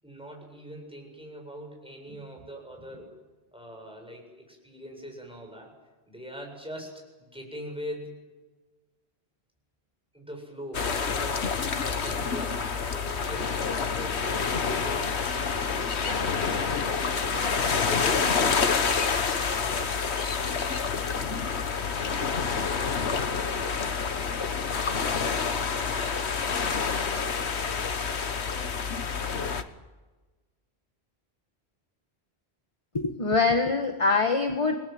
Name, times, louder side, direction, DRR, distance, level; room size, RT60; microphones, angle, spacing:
voice 1, 0.0-3.2 3.5-5.7 6.1-8.1 10.1-18.9 19.6-19.9 20.5-20.6, equal, 5° right, 1 dB, 8.0 m, -42 dB
sound 1, 10.7-29.6, left 5 dB, 90° left, 1.6 m, -28 dB
voice 2, 32.9-34.7, left 4 dB, 30° left, 4 dB, 1.6 m, -24 dB
29.0 x 20.5 x 7.9 m, 1.3 s
omnidirectional pair, 1.1 m